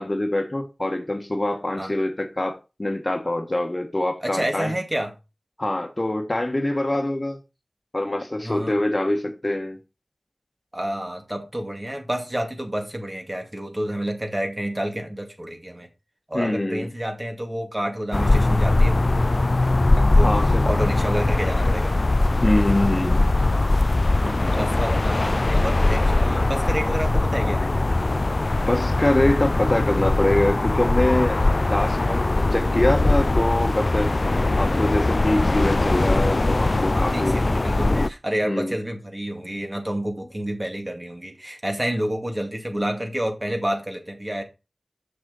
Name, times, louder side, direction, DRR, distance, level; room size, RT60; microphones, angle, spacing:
voice 1, 0.0-4.7 5.6-7.4 7.9-9.8 16.3-16.9 20.2-20.7 22.4-23.2 28.6-31.4 31.7-34.1 34.6-37.4 38.4-38.7, left 1 dB, 40° left, 1.4 m, -24 dB
voice 2, 4.2-5.1 8.4-8.7 10.7-15.9 16.3-19.0 20.0-21.9 24.1-27.6 36.9-44.4, right 1 dB, 25° right, 2.2 m, -29 dB
sound 1, 18.1-38.1, left 2 dB, 55° left, 0.4 m, -21 dB
6.5 x 6.2 x 4.0 m
wide cardioid pair, 45°, 0 cm